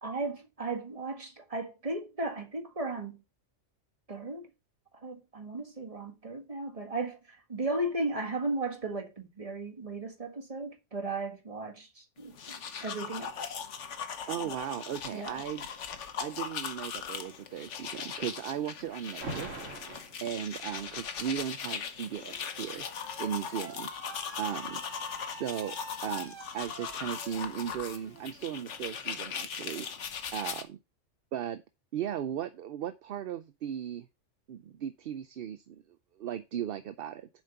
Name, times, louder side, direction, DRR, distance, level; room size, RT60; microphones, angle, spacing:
voice 1, 0.0-3.2 4.1-4.5 5.0-13.6 15.1-15.4, right 2 dB, 30° right, 1.7 m, -36 dB
sound 1, 12.2-30.6, left 7 dB, 75° left, 1.3 m, -39 dB
voice 2, 14.3-15.7 16.0-22.9 23.2-23.9 24.4-24.8 25.4-25.8 26.0-29.9 30.3-30.8 31.3-31.6 31.9-34.1 34.5-37.3, right 10 dB, 60° right, 0.7 m, -37 dB
Alarm, 19.2-20.2 21.4-29.1, right 3 dB, 80° right, 2.1 m, -47 dB
7.4 x 5.1 x 5.6 m
omnidirectional pair, 1.3 m